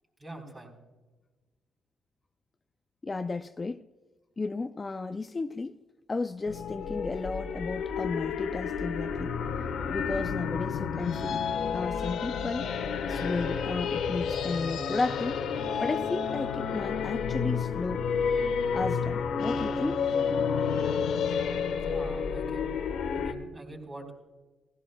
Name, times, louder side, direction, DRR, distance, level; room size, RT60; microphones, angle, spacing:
voice 1, 0.2-0.7 21.8-22.6 23.1-24.1, right 2 dB, 25° right, 4.2 m, -44 dB
voice 2, 3.0-3.9 4.4-5.7 6.1-9.4 9.9-11.4 11.7-12.7 13.1-15.4 15.8-18.0 18.7-20.0, left 3 dB, 25° left, 0.4 m, -33 dB
sound 1, 6.5-23.3, left 6 dB, 80° left, 1.4 m, -30 dB
18.0 x 16.0 x 2.3 m
cardioid pair, 120°, 0 cm